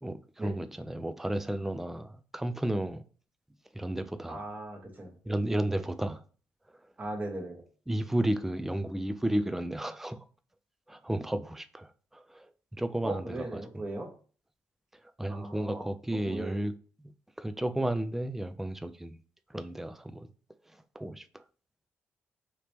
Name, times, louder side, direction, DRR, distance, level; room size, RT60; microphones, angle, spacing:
voice 1, 0.0-3.0 3.7-4.4 5.2-6.2 7.9-10.3 10.9-13.6 15.0-16.7 17.0-17.1 17.4-19.2 19.5-20.3 20.7-21.4, right 1 dB, 5° right, 0.3 m, -33 dB
voice 2, 4.3-5.2 5.7-5.8 7.0-7.6 13.0-14.1 15.3-15.8 16.1-16.6, right 2 dB, 20° right, 1.0 m, -38 dB
2.9 x 2.9 x 3.2 m
hypercardioid pair, 45°, 7 cm